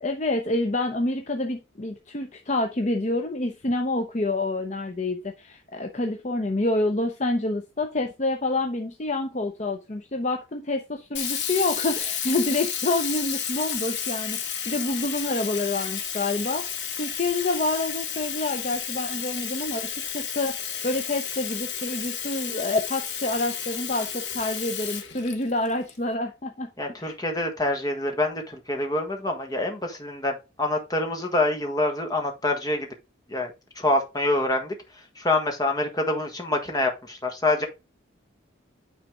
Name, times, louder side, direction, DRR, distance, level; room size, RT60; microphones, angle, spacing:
voice 1, 0.0-14.4 14.6-16.6 16.9-26.7 27.0-27.1, left 2 dB, 35° left, 0.7 m, -27 dB
Sink (filling or washing), 11.1-25.9, left 8 dB, 65° left, 1.2 m, -32 dB
voice 2, 26.8-32.9 33.3-34.7 35.1-37.7, left 2 dB, 20° left, 1.4 m, -26 dB
9.1 x 4.1 x 3.6 m
head